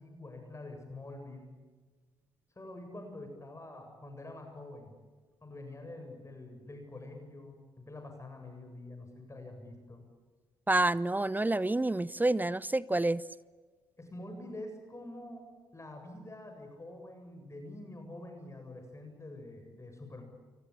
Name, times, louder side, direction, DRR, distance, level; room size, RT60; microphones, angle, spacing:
voice 1, 0.0-1.6 2.6-4.9 5.4-10.0 14.0-15.5 15.7-20.2, left 2 dB, 25° left, 4 dB, 7.8 m, -46 dB
voice 2, 10.7-13.2, right 2 dB, 15° right, 19 dB, 0.8 m, -28 dB
26.5 x 24.0 x 8.8 m, 1.4 s
figure-of-eight pair, 45°, 12 cm